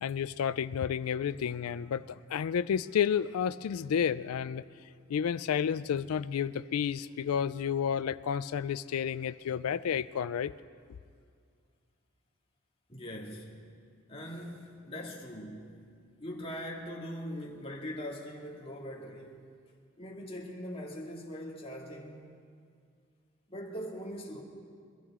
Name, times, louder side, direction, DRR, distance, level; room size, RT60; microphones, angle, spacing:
voice 1, 0.0-4.6 5.1-10.5, left 8 dB, 85° left, 0.4 m, -31 dB
voice 2, 12.9-13.5 14.1-15.8 16.2-19.5 20.0-22.3 23.5-24.4, equal, 25° left, 2.2 m, -41 dB
25.0 x 13.5 x 3.7 m
head